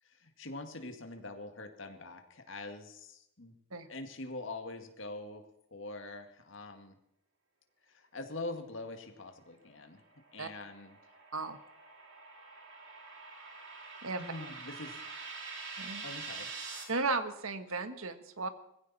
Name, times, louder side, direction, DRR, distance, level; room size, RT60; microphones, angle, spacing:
voice 1, 0.0-3.5 3.9-5.4 5.7-7.0 7.9-10.0 10.3-11.2 14.2-15.0 16.0-16.5, left 2 dB, 65° left, 5 dB, 1.9 m, -44 dB
sound 1, 10.0-16.8, right 4 dB, 60° right, 4.0 m, -46 dB
voice 2, 14.0-14.3 15.8-16.0 16.9-18.5, right 3 dB, 80° right, 10 dB, 1.5 m, -35 dB
20.0 x 16.0 x 4.2 m, 0.80 s
head